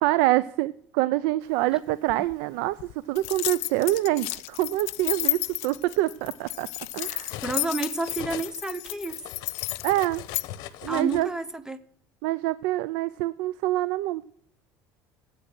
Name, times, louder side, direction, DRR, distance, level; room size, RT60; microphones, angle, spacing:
voice 1, 0.0-6.7 6.9-7.4 9.8-10.2 10.8-11.3 12.2-14.2, right 16 dB, 80° right, 18 dB, 0.4 m, -26 dB
Cutlery silverware, 1.7-3.0 3.9-4.1 4.5-7.8 8.1-11.2, left 13 dB, 65° left, 0.9 m, -42 dB
sound 1, 3.2-10.5, left 23 dB, 90° left, 0.4 m, -32 dB
voice 2, 7.4-9.1 10.9-11.8, right 3 dB, 10° right, 14 dB, 0.7 m, -30 dB
10.0 x 8.4 x 6.0 m, 0.65 s
cardioid pair, 120°, 7 cm